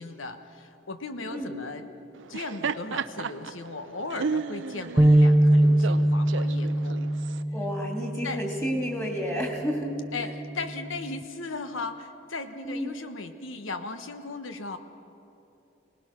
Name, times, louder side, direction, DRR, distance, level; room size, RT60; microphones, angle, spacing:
voice 1, 0.0-1.8 2.3-7.1 8.2-8.4 10.1-14.8, left 3 dB, 85° left, 8 dB, 1.2 m, -37 dB
Laughter, 2.2-7.4, right 5 dB, 70° right, 0.5 m, -34 dB
sound 1, 5.0-11.2, right 1 dB, 15° right, 0.5 m, -24 dB
voice 2, 7.5-9.9 10.2-10.3 12.6-13.0, equal, 15° left, 1 dB, 3.0 m, -31 dB
24.0 x 19.0 x 6.2 m, 2.9 s
head